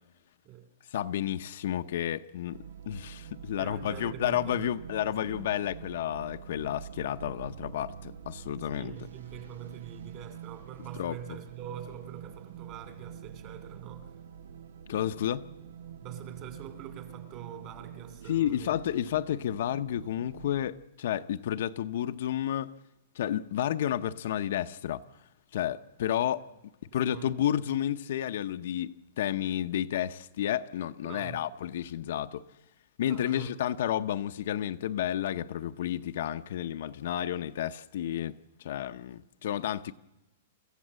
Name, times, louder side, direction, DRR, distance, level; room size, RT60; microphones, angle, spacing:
voice 1, 0.9-2.6 2.9-8.9 11.0-11.2 14.9-15.4 18.3-22.8 23.1-25.0 25.5-26.5 26.9-32.4 33.0-39.9, left 11 dB, 60° left, 0.7 m, -31 dB
sound 1, 2.5-20.7, right 8 dB, 85° right, 0.9 m, -46 dB
voice 2, 3.6-5.5 8.7-14.1 16.0-18.8 27.1-27.3 31.0-31.5 33.1-33.7, right 9 dB, 30° right, 2.5 m, -44 dB
27.0 x 14.5 x 7.6 m
hypercardioid pair, 170°, 0 cm